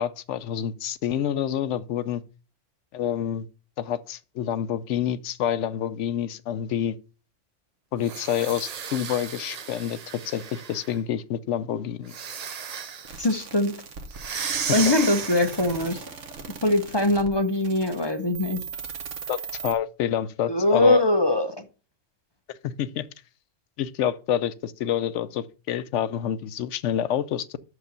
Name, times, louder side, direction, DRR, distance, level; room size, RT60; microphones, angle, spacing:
voice 1, 0.0-2.2 2.9-3.5 3.8-7.0 7.9-10.0 10.2-12.1 19.3-21.0 22.6-23.1 23.8-27.5, left 10 dB, 75° left, 0.9 m, -28 dB
sound 1, 8.0-11.0 12.0-13.2 14.1-15.8, right 7 dB, 50° right, 0.5 m, -34 dB
sound 2, 13.0-19.7, right 6 dB, 75° right, 1.5 m, -39 dB
voice 2, 13.2-13.7 14.3-16.0 16.6-18.6 20.5-21.6, left 2 dB, 25° left, 0.8 m, -22 dB
6.4 x 5.0 x 6.7 m
omnidirectional pair, 1.3 m